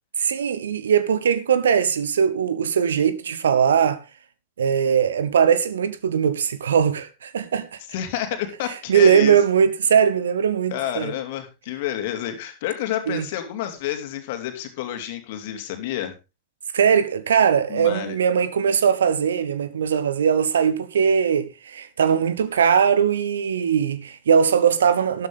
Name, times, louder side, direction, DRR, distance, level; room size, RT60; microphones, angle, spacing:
voice 1, 0.2-4.0 4.6-7.8 8.9-11.1 13.1-13.3 16.7-25.3, right 7 dB, 65° right, 1.0 m, -20 dB
voice 2, 7.9-9.4 10.7-16.2 17.7-18.2, left 11 dB, 50° left, 2.8 m, -29 dB
13.0 x 12.0 x 3.5 m
figure-of-eight pair, 90°, 0 cm